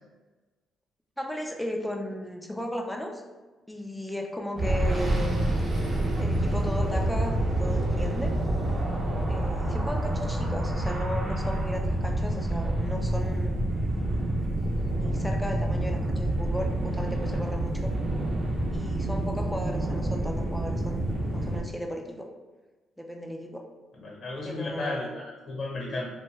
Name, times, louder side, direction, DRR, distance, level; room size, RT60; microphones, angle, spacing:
voice 1, 1.2-3.2 3.7-5.5 6.2-8.3 9.3-13.7 14.9-17.9 18.7-22.3 23.0-23.7 24.4-25.2, equal, 5° left, 2 dB, 0.4 m, -36 dB
sound 1, 4.6-21.6, right 1 dB, 35° right, 0.7 m, -27 dB
voice 2, 24.0-26.1, left 2 dB, 45° left, -3 dB, 0.9 m, -34 dB
2.6 x 2.2 x 3.1 m, 1.2 s
cardioid pair, 90°, 0 cm